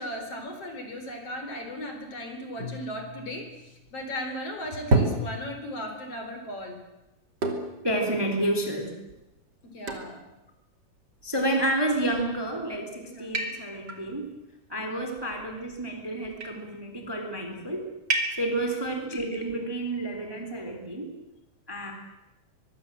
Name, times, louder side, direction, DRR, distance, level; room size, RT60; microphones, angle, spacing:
voice 1, 0.0-6.8 9.6-10.2 13.0-13.3 14.9-15.0 18.4-18.5, left 1 dB, 45° left, 5 dB, 5.1 m, -37 dB
sound 1, 2.6-4.0 4.9-5.9 7.4-7.9 8.5-8.6 9.1-9.2 9.9-10.2 11.3-11.8 12.4-12.8 13.3-14.0 15.2-15.8 16.2-16.7 18.1-18.7, right 2 dB, 35° right, 3.1 m, -30 dB
voice 2, 7.8-8.9 11.2-14.3 14.7-17.9 18.4-21.1 21.7-21.9, right 1 dB, 5° right, 4 dB, 3.2 m, -30 dB
24.0 x 23.5 x 7.7 m, 0.94 s
omnidirectional pair, 3.7 m